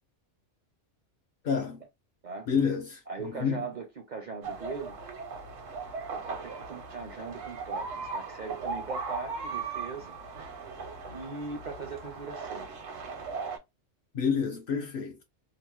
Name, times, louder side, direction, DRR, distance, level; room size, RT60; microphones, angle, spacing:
voice 1, 1.4-1.8 2.5-3.7 14.1-15.2, left 6 dB, 60° left, 0.6 m, -29 dB
voice 2, 3.1-5.0 6.1-10.1 11.1-12.7, right 4 dB, 50° right, 0.5 m, -40 dB
sound 1, 4.4-13.6, right 4 dB, 80° right, 1.1 m, -38 dB
2.9 x 2.0 x 3.0 m
omnidirectional pair, 1.3 m